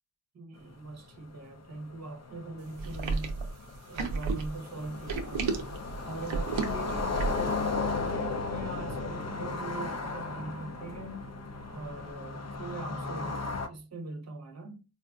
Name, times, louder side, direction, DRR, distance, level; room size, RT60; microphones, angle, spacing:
voice 1, 0.3-3.4 3.9-5.5 6.0-11.3 11.7-13.4 13.7-14.8, right 2 dB, 35° right, 0.8 m, -41 dB
sound 1, 0.7-0.8 1.1-1.2 1.5-13.7, left 4 dB, 35° left, 0.5 m, -35 dB
sound 2, 2.8-7.5, right 4 dB, 85° right, 0.7 m, -32 dB
3.8 x 2.5 x 2.3 m
cardioid pair, 60°, 47 cm